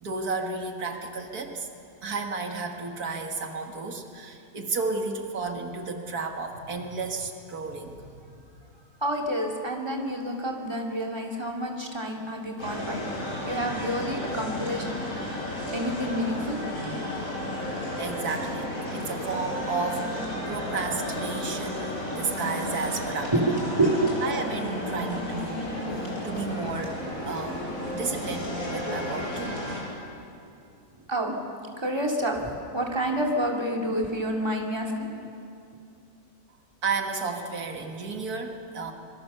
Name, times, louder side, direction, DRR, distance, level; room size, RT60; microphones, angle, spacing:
voice 1, 0.0-1.7 2.0-8.3 18.0-23.3 24.2-27.6 27.9-29.6 36.8-38.9, right 4 dB, 80° right, 3 dB, 2.2 m, -33 dB
voice 2, 9.0-13.0 13.4-15.4 15.7-16.6 23.3-23.4 23.8-24.1 27.3-27.4 31.1-31.3 31.8-35.1, right 1 dB, 15° right, 0 dB, 2.5 m, -28 dB
sound 1, 12.6-29.8, left 1 dB, 65° left, 5.6 m, -33 dB
26.0 x 23.0 x 6.8 m, 2.6 s
omnidirectional pair, 1.6 m